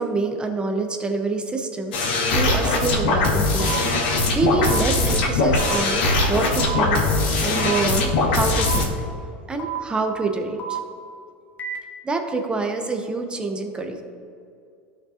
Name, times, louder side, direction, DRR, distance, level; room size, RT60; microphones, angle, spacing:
voice 1, 0.0-3.8 4.3-7.0 7.4-8.9 9.5-10.8 12.0-14.0, right 3 dB, 20° right, 4 dB, 0.9 m, -26 dB
sound 1, 1.9-8.9, left 3 dB, 85° left, 2.0 m, -21 dB
sound 2, 3.6-3.8 4.6-4.8 5.6-5.8 6.6-6.8 7.6-7.8 8.6-8.8 9.6-9.8 10.6-10.8 11.6-11.8, right 7 dB, 35° left, 1.2 m, -30 dB
13.0 x 5.4 x 2.8 m, 2.5 s
supercardioid pair, 105°, 5 cm